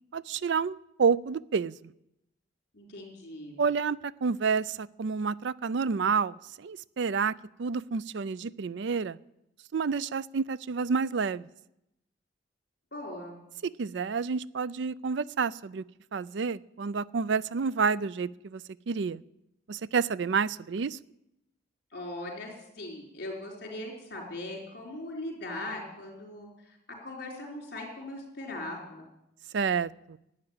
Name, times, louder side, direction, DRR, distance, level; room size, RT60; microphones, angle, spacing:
voice 1, 0.1-1.8 3.6-9.2 9.7-11.5 13.6-15.8 16.1-18.6 18.9-19.2 19.7-21.0 29.5-30.2, right 5 dB, 65° right, 19 dB, 0.4 m, -29 dB
voice 2, 2.7-3.6 12.9-13.4 21.9-29.0, left 1 dB, 55° left, -1 dB, 4.2 m, -40 dB
11.5 x 9.6 x 8.9 m, 0.85 s
head